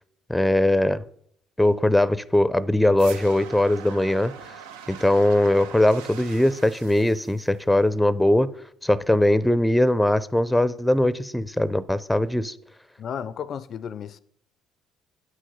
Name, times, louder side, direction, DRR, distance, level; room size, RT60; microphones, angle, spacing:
voice 1, 0.3-1.0 1.6-4.3 4.9-8.5 8.8-12.5, left 1 dB, 5° left, 0.5 m, -20 dB
sound 1, 3.0-8.0, right 8 dB, 80° right, 0.6 m, -43 dB
voice 2, 13.0-14.2, left 8 dB, 55° left, 0.4 m, -33 dB
9.4 x 6.3 x 5.4 m
hypercardioid pair, 55°, 0 cm